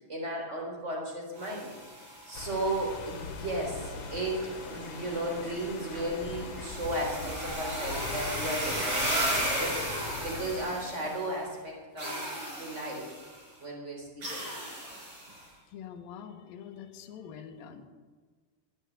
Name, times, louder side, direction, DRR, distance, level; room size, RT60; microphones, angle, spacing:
voice 1, 0.0-1.7 2.3-12.3 12.6-13.1 13.6-14.4, right 1 dB, 15° right, -1 dB, 3.7 m, -35 dB
sound 1, 1.3-11.4 12.0-13.4 14.2-15.4, right 1 dB, 30° right, 6.2 m, -36 dB
sound 2, 2.3-10.7, left 5 dB, 90° left, 3.3 m, -42 dB
sound 3, 3.6-11.1, equal, 80° right, 8.6 m, -47 dB
voice 2, 15.7-17.9, left 8 dB, 70° left, 3 dB, 2.5 m, -45 dB
14.0 x 9.9 x 8.0 m, 1.5 s
omnidirectional pair, 4.9 m